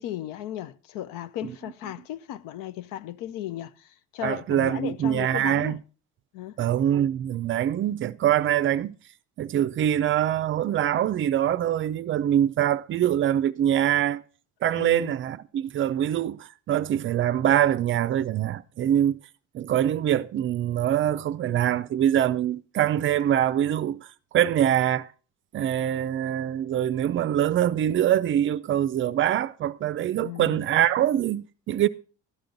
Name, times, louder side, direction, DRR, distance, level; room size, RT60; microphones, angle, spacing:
voice 1, 0.0-5.8 6.3-6.6 14.8-15.1 30.2-30.6, left 12 dB, 80° left, 0.8 m, -36 dB
voice 2, 4.2-5.8 6.6-9.0 9.4-14.2 14.6-19.2 19.5-24.1 24.3-25.1 25.5-31.9, right 11 dB, 40° right, 0.5 m, -24 dB
13.0 x 10.5 x 3.9 m
cardioid pair, 150°, 33 cm